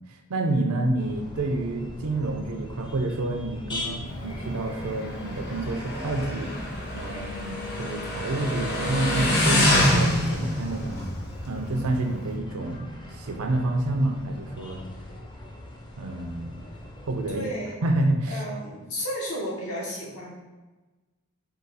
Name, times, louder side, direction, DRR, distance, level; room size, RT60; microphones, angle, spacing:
voice 1, 0.0-6.5 6.9-11.0 11.4-14.8 16.0-16.5 17.0-17.5 17.8-18.4, right 2 dB, 85° right, 4 dB, 0.6 m, -28 dB
sound 1, 1.0-17.4, left 1 dB, 20° left, 0.5 m, -41 dB
Motorcycle, 4.1-12.4, left 1 dB, 50° left, 0.9 m, -27 dB
voice 2, 17.3-17.7 18.3-20.3, equal, 85° left, -4 dB, 1.3 m, -33 dB
4.9 x 2.4 x 4.0 m, 1.2 s
head